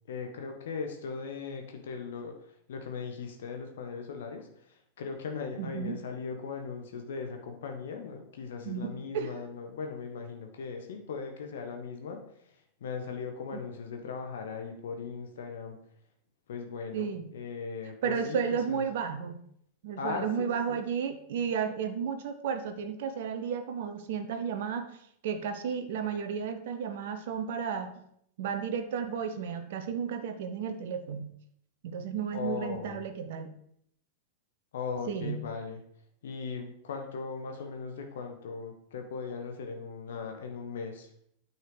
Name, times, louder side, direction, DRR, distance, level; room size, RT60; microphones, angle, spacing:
voice 1, 0.1-12.2 12.8-15.8 16.5-18.4 18.7-18.8 20.0-20.8 32.3-33.0 34.7-35.8 36.2-41.1, left 5 dB, 60° left, 4 dB, 1.4 m, -38 dB
voice 2, 5.6-6.0 8.7-9.3 13.5-13.6 16.9-17.3 18.0-19.4 19.8-24.9 25.2-28.0 28.4-31.3 31.8-33.5 35.1-35.4, right 7 dB, 55° right, 8 dB, 1.0 m, -33 dB
9.2 x 6.5 x 5.0 m, 0.70 s
figure-of-eight pair, 90°, 0 cm